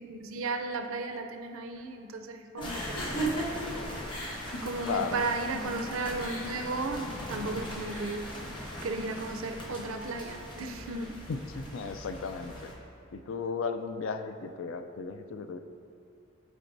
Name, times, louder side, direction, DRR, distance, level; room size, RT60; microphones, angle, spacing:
voice 1, 0.0-3.1 4.6-8.3 8.8-11.2, right 3 dB, 70° right, 6 dB, 0.5 m, -35 dB
sound 1, 2.6-9.4, right 1 dB, 85° left, 1.2 m, -38 dB
sound 2, 2.6-12.7, left 1 dB, 20° left, 0.8 m, -41 dB
voice 2, 4.8-5.3 11.3-12.7 13.1-15.6, left 5 dB, 60° left, 8 dB, 0.4 m, -35 dB
12.0 x 4.3 x 2.6 m, 2.6 s
head